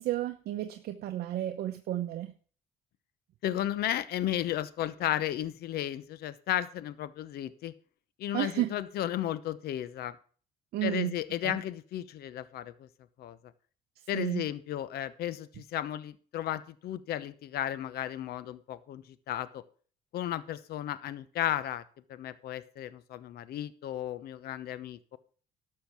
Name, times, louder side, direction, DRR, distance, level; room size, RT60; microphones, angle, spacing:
voice 1, 0.0-2.3 8.3-8.7 10.7-11.2 11.4-11.6 14.1-14.5, right 14 dB, 65° right, 6 dB, 0.9 m, -32 dB
voice 2, 3.4-7.7 8.2-10.2 10.8-12.9 13.2-13.4 14.1-19.6 20.1-21.8 22.1-25.0, left 12 dB, 70° left, 16 dB, 0.9 m, -34 dB
12.0 x 6.8 x 6.0 m, 0.43 s
cardioid pair, 110°, 17 cm